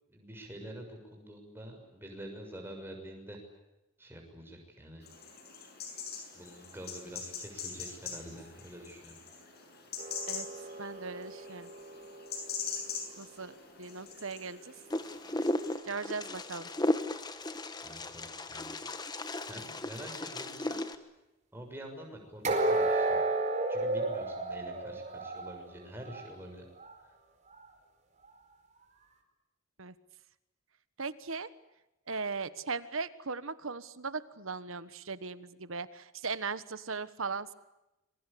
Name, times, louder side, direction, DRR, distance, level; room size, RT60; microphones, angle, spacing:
voice 1, 0.1-3.4 4.0-5.1 6.3-9.2 17.8-18.8 19.4-20.8 21.5-23.2 23.7-26.6 27.0-27.1, right 1 dB, 10° right, 2 dB, 6.5 m, -47 dB
sound 1, 5.0-15.8, left 6 dB, 50° left, 7.0 m, -43 dB
sound 2, 10.0-13.1 22.4-26.4 26.7-26.9 27.5-27.6, right 2 dB, 35° right, 4.7 m, -33 dB
voice 2, 10.8-11.7 13.2-14.7 15.8-16.7 29.8-29.9 31.0-31.5 32.1-37.5, right 4 dB, 75° right, 14 dB, 1.4 m, -38 dB
Wind, 14.9-20.9, left 1 dB, 20° left, 1.4 m, -35 dB
26.5 x 23.5 x 8.5 m, 0.94 s
head